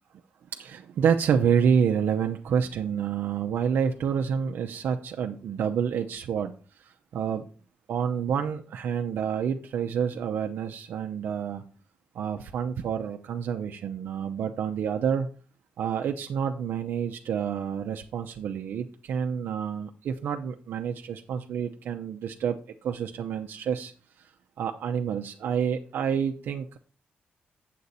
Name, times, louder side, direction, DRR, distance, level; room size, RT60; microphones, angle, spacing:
voice 1, 0.5-6.5 6.8-7.5 7.9-11.6 12.1-15.3 15.8-23.9 24.6-26.8, right 7 dB, 80° right, 4 dB, 0.6 m, -28 dB
8.2 x 7.6 x 4.1 m, 0.38 s
cardioid pair, 125°, 4 cm